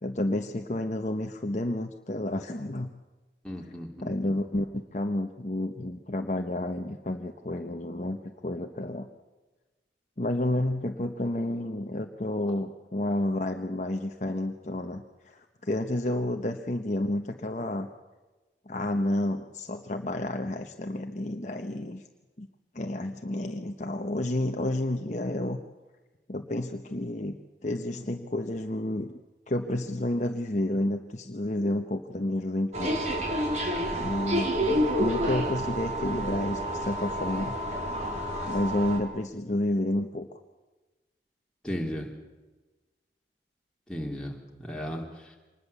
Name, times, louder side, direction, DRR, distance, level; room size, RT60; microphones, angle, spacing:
voice 1, 0.0-2.9 4.0-8.2 8.4-9.1 10.2-17.9 18.7-22.0 22.4-22.5 22.7-25.6 26.3-29.1 29.5-33.0 34.0-37.6 38.5-40.4, left 1 dB, 40° left, 4 dB, 1.0 m, -30 dB
voice 2, 3.4-4.3 41.6-42.1 43.9-44.3 44.6-45.0, equal, 5° left, -2 dB, 3.3 m, -35 dB
sound 1, 32.7-39.0, equal, 40° right, 3.5 m, -29 dB
25.5 x 20.0 x 7.0 m, 1.2 s
head